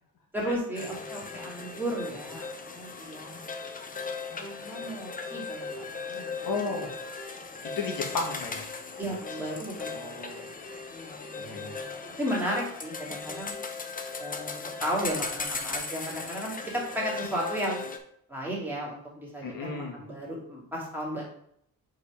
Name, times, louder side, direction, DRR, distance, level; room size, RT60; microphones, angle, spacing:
voice 1, 0.3-3.3 4.4-6.3 7.4-7.8 9.0-10.1 10.9-13.5 14.2-17.8 18.3-21.2, equal, 5° right, -5 dB, 2.7 m, -34 dB
sound 1, 0.7-18.0, left 4 dB, 25° left, 0.7 m, -38 dB
voice 2, 6.5-6.9 7.8-8.7 9.0-9.1 9.9-10.5 11.4-11.8 19.4-20.0, left 4 dB, 70° left, 1 dB, 1.8 m, -34 dB
5.1 x 4.1 x 5.1 m, 0.69 s
cardioid pair, 120°, 35 cm